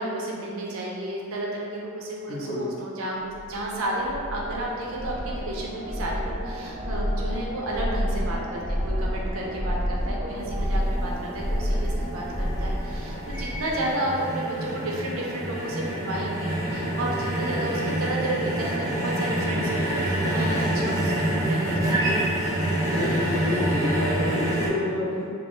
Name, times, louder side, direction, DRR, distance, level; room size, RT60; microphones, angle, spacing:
voice 1, 0.0-22.8, right 1 dB, 70° right, -3 dB, 0.5 m, -32 dB
voice 2, 2.3-2.7 22.9-25.2, left 1 dB, 40° left, -11 dB, 0.5 m, -28 dB
sound 1, 3.3-13.9, equal, 75° left, 0.8 m, -29 dB
sound 2, 10.4-24.7, right 1 dB, 15° right, 0.4 m, -27 dB
2.4 x 2.2 x 3.0 m, 2.4 s
head